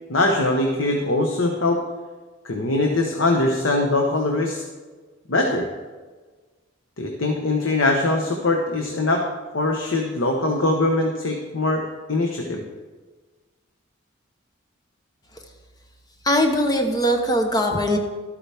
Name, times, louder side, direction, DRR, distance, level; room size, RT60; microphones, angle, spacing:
voice 1, 0.1-1.8 2.4-4.6 5.3-5.7 7.0-9.3 9.5-11.8 12.1-12.6, left 2 dB, 85° left, 2 dB, 1.0 m, -22 dB
voice 2, 16.2-18.0, equal, 20° left, 4 dB, 0.9 m, -20 dB
12.5 x 8.6 x 3.4 m, 1.4 s
head